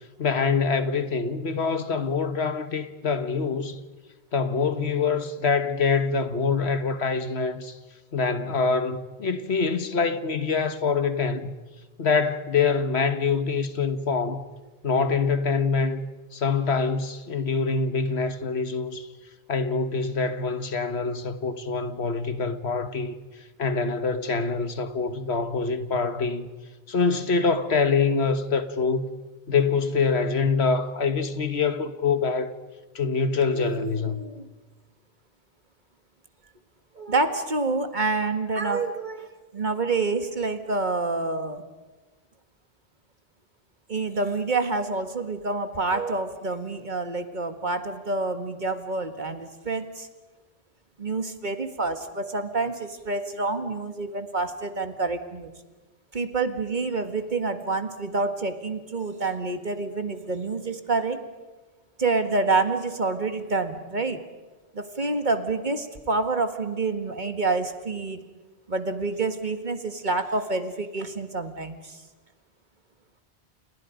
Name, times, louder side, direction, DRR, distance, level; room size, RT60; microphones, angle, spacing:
voice 1, 0.2-3.8 4.3-7.8 8.1-11.6 12.0-14.5 14.8-16.0 16.3-19.1 19.5-23.1 23.6-26.5 26.9-29.1 29.5-32.5 32.9-34.2, left 5 dB, 75° left, 1.7 m, -25 dB
voice 2, 33.5-34.5 37.0-39.3 39.5-41.6 43.9-50.1 51.0-55.5 56.1-61.2 62.0-64.2 64.7-68.2 68.7-72.0, right 3 dB, 45° right, 1.9 m, -27 dB
30.0 x 29.0 x 5.2 m
omnidirectional pair, 1.1 m